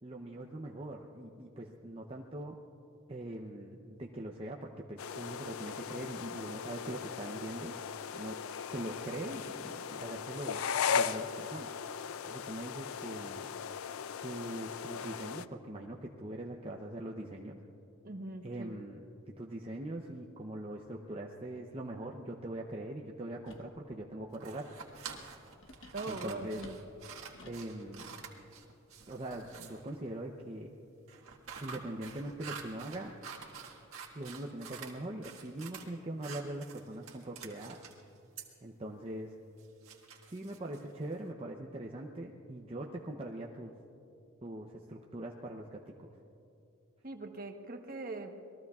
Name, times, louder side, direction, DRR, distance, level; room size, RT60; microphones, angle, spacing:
voice 1, 0.0-2.6 3.1-7.7 8.1-8.4 8.6-10.6 10.9-11.7 12.2-13.5 14.2-17.6 18.4-19.0 19.3-24.8 26.1-26.6 27.4-28.2 29.1-30.8 31.6-33.1 34.1-37.8 38.6-39.4 40.3-43.7 44.4-46.1, right 1 dB, 25° right, 0 dB, 0.6 m, -42 dB
sound 1, 5.0-15.5, left 7 dB, 80° left, 0.4 m, -38 dB
voice 2, 18.0-18.7 25.9-26.8 47.0-48.3, right 2 dB, 40° right, 5 dB, 1.1 m, -41 dB
sound 2, 23.4-23.8 25.6-27.7, left 2 dB, 60° left, 1.1 m, -54 dB
sound 3, 24.3-30.0 31.1-34.9 35.2-35.9 36.2-38.0 38.4-38.5 39.6-41.1, right 6 dB, 80° right, 1.7 m, -48 dB
27.5 x 21.0 x 2.4 m, 2.7 s
head